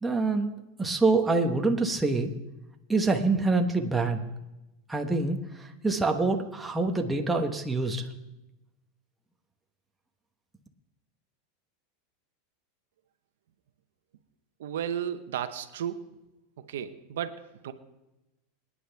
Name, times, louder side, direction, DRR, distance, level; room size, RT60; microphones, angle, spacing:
voice 1, 0.0-2.3 2.9-4.2 4.9-8.0, right 3 dB, 10° right, 2 dB, 1.2 m, -26 dB
voice 2, 14.6-16.0 16.6-17.7, right 9 dB, 85° right, 9 dB, 1.0 m, -34 dB
25.0 x 9.9 x 3.5 m, 0.97 s
supercardioid pair, 145°, 0 cm